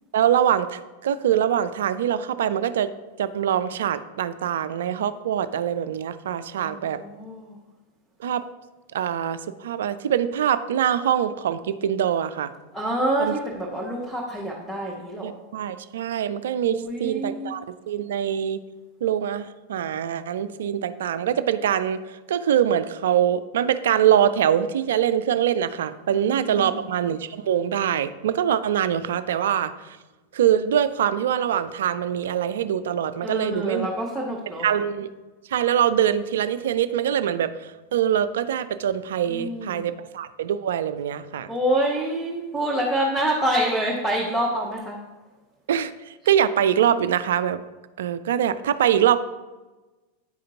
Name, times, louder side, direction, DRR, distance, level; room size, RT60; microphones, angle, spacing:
voice 1, 0.1-2.9 3.2-7.0 8.2-8.4 8.9-12.5 13.2-13.3 15.2-18.6 19.0-22.0 22.3-30.0 30.3-33.9 34.6-35.1 35.5-41.5 45.7-47.6 48.0-49.2, right 9 dB, 60° right, 13 dB, 0.3 m, -23 dB
voice 2, 6.6-7.6 12.7-15.3 16.7-17.6 26.1-26.8 33.2-34.6 39.3-39.9 41.5-45.0, right 1 dB, ahead, -5 dB, 0.9 m, -27 dB
9.5 x 4.9 x 2.8 m, 1.2 s
figure-of-eight pair, 90°, 0 cm